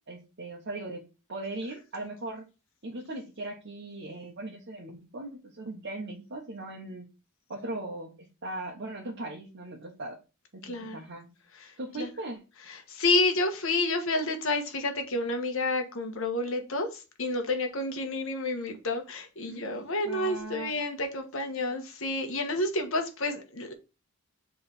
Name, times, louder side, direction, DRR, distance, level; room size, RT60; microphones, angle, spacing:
voice 1, 0.1-2.5 2.8-7.0 7.5-8.1 8.4-10.2 10.5-11.3 11.8-12.4 19.4-19.8 20.0-20.7, right 2 dB, 55° right, 1.1 m, -39 dB
voice 2, 10.6-11.0 11.5-12.1 12.6-23.7, left 2 dB, 65° left, 1.3 m, -30 dB
6.9 x 3.4 x 4.3 m
head